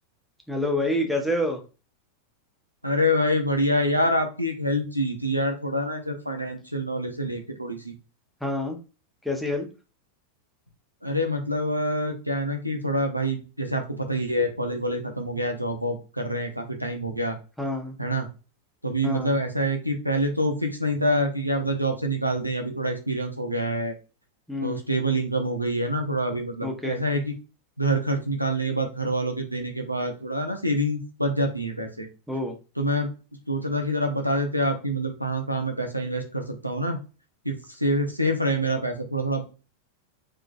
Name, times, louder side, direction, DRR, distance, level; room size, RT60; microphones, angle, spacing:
voice 1, 0.5-1.6 8.4-8.8 9.2-9.7 17.6-18.0 19.0-19.4 24.5-24.8 26.6-27.0 32.3-32.5, left 1 dB, ahead, 1 dB, 0.9 m, -27 dB
voice 2, 2.8-7.9 11.0-17.4 18.0-18.3 18.8-23.9 24.6-27.3 27.8-32.1 32.8-33.1 33.5-37.0 37.4-39.5, equal, 90° right, 4 dB, 0.8 m, -26 dB
3.7 x 3.2 x 2.5 m, 0.33 s
figure-of-eight pair, 90°, 0 cm